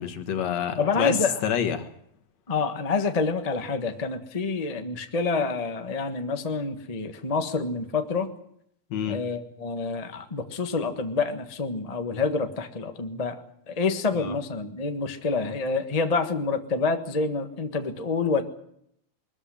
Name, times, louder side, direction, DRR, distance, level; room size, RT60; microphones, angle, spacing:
voice 1, 0.0-1.9 8.9-9.2 14.1-14.4, left 8 dB, 65° left, 8 dB, 2.6 m, -28 dB
voice 2, 0.8-1.4 2.5-8.3 9.1-18.4, left 4 dB, 35° left, 6 dB, 0.6 m, -27 dB
21.5 x 14.0 x 9.9 m, 0.71 s
omnidirectional pair, 3.4 m